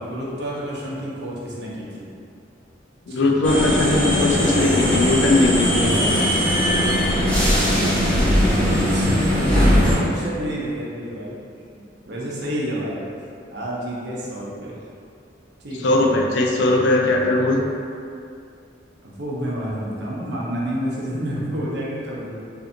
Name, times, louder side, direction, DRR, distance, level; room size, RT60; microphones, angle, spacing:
voice 1, 0.0-2.1 3.1-3.2 8.1-11.4 11.8-13.1 13.5-14.7 15.6-16.0 19.0-22.4, equal, 60° right, -5 dB, 0.6 m, -29 dB
voice 2, 3.1-6.0 8.6-8.7 15.8-17.6, left 2 dB, 65° left, 1 dB, 0.3 m, -19 dB
sound 1, 3.4-10.0, equal, 5° left, 0.5 m, -19 dB
2.6 x 2.5 x 2.5 m, 2.4 s
head